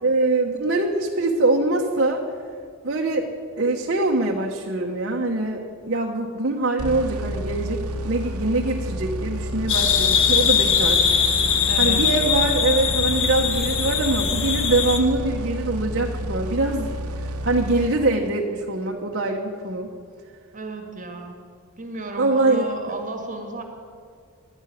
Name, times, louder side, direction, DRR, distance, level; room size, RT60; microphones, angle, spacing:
voice 1, 0.0-2.2 2.8-3.3 3.6-7.8 8.0-11.0 11.8-19.9 22.2-22.7, right 2 dB, 50° right, 0 dB, 1.1 m, -23 dB
sound 1, 6.8-18.4, equal, 85° right, 1.1 m, -30 dB
sound 2, 9.7-15.0, left 7 dB, 60° left, 1.5 m, -21 dB
voice 2, 11.7-12.1 20.5-21.4 21.8-23.6, right 2 dB, 35° right, 4 dB, 1.8 m, -34 dB
11.5 x 11.0 x 9.2 m, 2.3 s
head